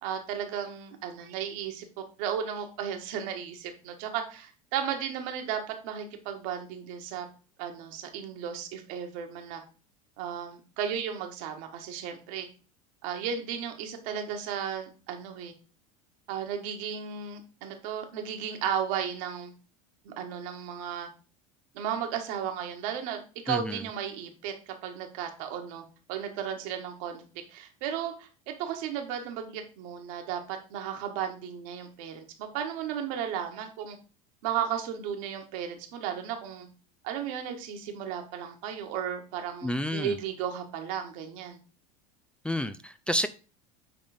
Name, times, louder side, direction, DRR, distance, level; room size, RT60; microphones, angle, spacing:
voice 1, 0.0-7.3 7.6-9.6 10.2-12.5 13.0-15.5 16.3-19.5 20.0-21.1 21.7-27.2 27.5-34.0 34.4-36.7 37.0-41.6, right 8 dB, 65° right, 1.8 m, -34 dB
voice 2, 23.5-23.8 39.6-40.2 42.4-43.3, left 1 dB, 5° left, 0.5 m, -30 dB
8.8 x 3.9 x 5.1 m
hypercardioid pair, 80°, 18 cm